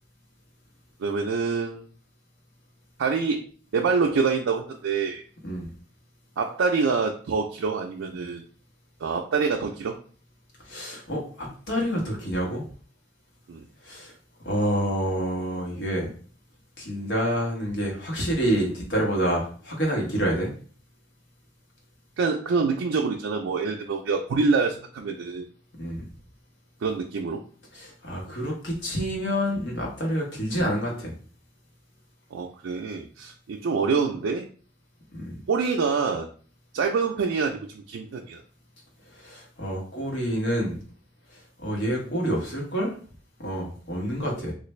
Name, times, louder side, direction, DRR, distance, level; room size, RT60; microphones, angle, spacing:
voice 1, 1.0-1.8 3.0-3.5 3.7-5.2 6.4-8.4 9.0-9.9 13.5-13.6 22.2-25.5 26.8-27.4 32.3-34.5 35.5-36.3 36.7-38.4, right 4 dB, 90° right, 1 dB, 0.4 m, -26 dB
voice 2, 10.6-12.6 13.8-14.1 14.4-16.1 16.8-20.5 25.8-26.0 27.7-31.1 35.1-35.4 39.1-40.8 41.3-42.9 43.4-44.5, equal, 65° left, -1 dB, 1.1 m, -28 dB
3.3 x 2.4 x 3.1 m, 0.43 s
head